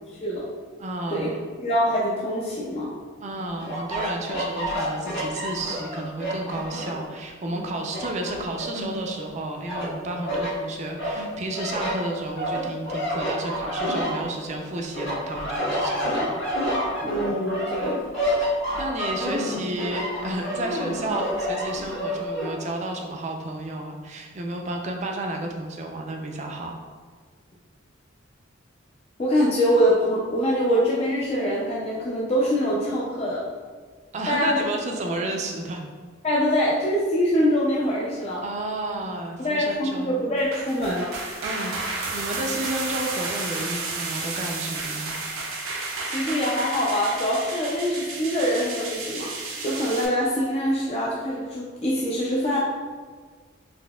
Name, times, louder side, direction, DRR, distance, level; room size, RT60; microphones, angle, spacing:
voice 1, 0.1-0.5 1.1-1.3 1.6-2.9 17.0-18.1 29.2-33.4 34.3-34.6 36.2-38.4 39.4-41.1 46.0-52.6, equal, 30° left, -5 dB, 0.4 m, -24 dB
voice 2, 0.8-1.4 3.2-16.4 18.4-26.8 34.1-35.8 38.4-40.2 41.4-45.2, right 2 dB, 35° right, 2 dB, 0.4 m, -32 dB
sound 1, 3.6-7.0 7.5-9.3 9.7-10.5 11.0-14.6 14.9-22.5, equal, 80° left, 1.5 m, -29 dB
sound 2, 40.4-50.1, right 3 dB, 85° right, 0.6 m, -32 dB
4.1 x 2.7 x 2.2 m, 1.5 s
head